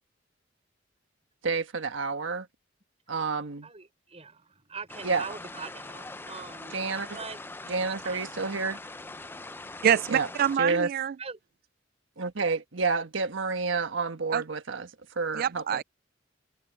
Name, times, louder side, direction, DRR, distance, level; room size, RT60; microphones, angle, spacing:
voice 1, 1.4-2.5 3.1-3.7 5.0-5.2 6.7-7.1 7.7-8.8 10.1-10.3 10.6-10.9 12.2-14.9 15.1-15.8, right 4 dB, 80° right, 1.4 m, -29 dB
voice 2, 3.6-7.7 8.0-8.2 11.2-11.4, right 4 dB, 35° right, 4.6 m, -43 dB
sound 1, 4.9-10.6, left 2 dB, 10° left, 0.5 m, -42 dB
voice 3, 9.8-11.1 14.3-14.4 15.3-15.8, right 9 dB, 50° right, 0.3 m, -25 dB
head